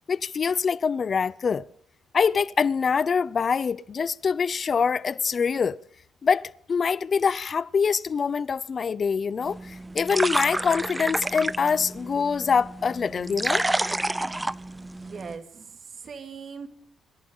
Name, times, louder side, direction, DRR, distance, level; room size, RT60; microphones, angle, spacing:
voice 1, 0.1-1.7 2.1-5.8 6.2-13.6, left 6 dB, 45° left, 0.6 m, -24 dB
sound 1, 9.4-15.4, right 2 dB, 15° right, 0.5 m, -30 dB
voice 2, 14.8-16.7, right 5 dB, 50° right, 2.4 m, -40 dB
26.5 x 11.5 x 3.9 m
cardioid pair, 90°, 0 cm